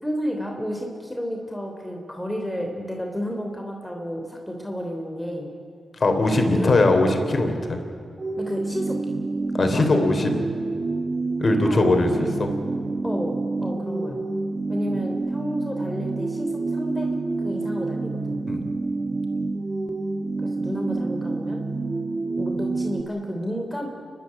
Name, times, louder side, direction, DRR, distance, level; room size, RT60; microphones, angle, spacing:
voice 1, 0.0-5.5 6.2-6.8 8.4-9.0 11.6-12.2 13.0-14.2 14.7-17.1 17.4-18.4 20.4-21.6 22.4-23.9, equal, 5° left, 1 dB, 3.2 m, -31 dB
voice 2, 6.0-7.8 9.5-10.3 11.4-12.5 18.5-18.6, left 2 dB, 50° left, 5 dB, 3.5 m, -20 dB
sound 1, 8.2-23.0, right 3 dB, 40° right, 1.3 m, -28 dB
28.0 x 12.0 x 9.9 m, 2.4 s
cardioid pair, 55°, 0 cm